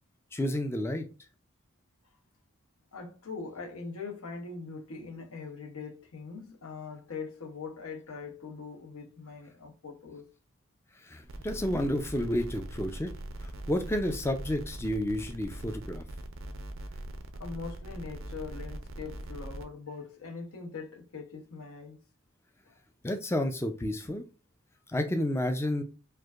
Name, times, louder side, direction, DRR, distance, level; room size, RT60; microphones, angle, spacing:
voice 1, 0.3-1.0 11.0-13.1 13.4-16.0 23.0-24.2 24.9-25.8, left 1 dB, 10° left, 0.3 m, -30 dB
voice 2, 2.9-10.3 17.3-22.0 22.7-22.8, left 4 dB, 75° left, 0.8 m, -42 dB
sound 1, 11.2-19.6, right 1 dB, 60° right, 0.5 m, -41 dB
4.5 x 2.5 x 2.4 m
head